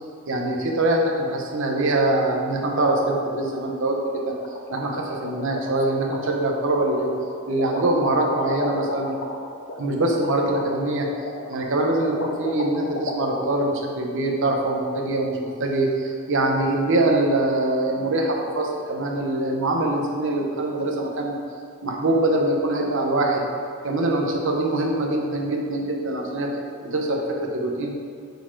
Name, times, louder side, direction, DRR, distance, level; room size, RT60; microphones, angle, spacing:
voice 1, 0.3-4.4 4.7-7.1 7.5-9.1 9.8-11.1 11.5-21.3 21.8-23.4 23.8-27.9, right 2 dB, 60° right, 1 dB, 0.9 m, -23 dB
sound 1, 4.4-13.5, left 2 dB, 55° left, 0.6 m, -33 dB
6.9 x 4.1 x 4.7 m, 2.4 s
head